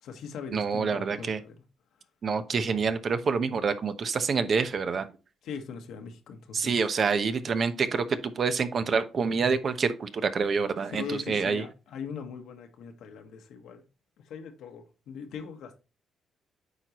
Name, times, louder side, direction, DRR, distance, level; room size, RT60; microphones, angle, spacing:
voice 1, 0.0-1.5 5.4-6.8 10.9-13.8 14.2-15.8, left 6 dB, 80° left, 1.5 m, -40 dB
voice 2, 0.5-1.4 2.2-5.1 6.5-11.6, right 5 dB, 50° right, 0.9 m, -27 dB
8.8 x 4.6 x 3.0 m
cardioid pair, 90°, 0 cm